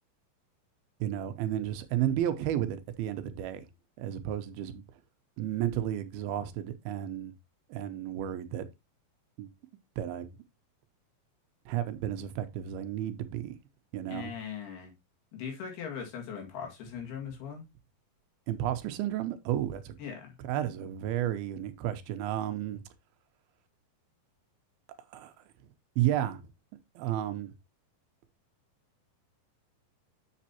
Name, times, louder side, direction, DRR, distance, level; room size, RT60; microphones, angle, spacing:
voice 1, 1.0-3.7 4.0-4.8 5.4-7.3 7.7-8.7 9.4-9.5 10.0-10.3 11.7-13.6 13.9-14.3 18.5-20.0 20.4-22.8 25.1-25.3 26.0-26.4 27.0-27.6, right 11 dB, 85° right, 2.8 m, -32 dB
voice 2, 14.1-14.9 15.3-17.6 20.0-20.4, left 7 dB, 90° left, 4.1 m, -40 dB
7.5 x 7.3 x 2.8 m
omnidirectional pair, 4.3 m